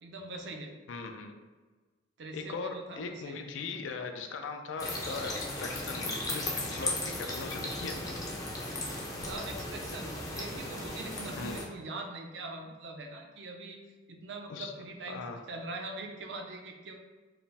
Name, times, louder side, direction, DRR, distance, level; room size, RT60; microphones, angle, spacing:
voice 1, 0.0-0.7 2.2-3.5 8.8-13.8 14.1-15.2 15.5-16.9, right 2 dB, 60° right, 3 dB, 0.5 m, -42 dB
voice 2, 0.9-1.4 2.3-8.0 11.4-11.6 14.5-14.7 15.1-15.4, left 4 dB, 80° left, 5 dB, 0.4 m, -39 dB
sound 1, 4.8-11.6, left 2 dB, 20° left, 0.5 m, -36 dB
4.7 x 2.0 x 3.4 m, 1.3 s
head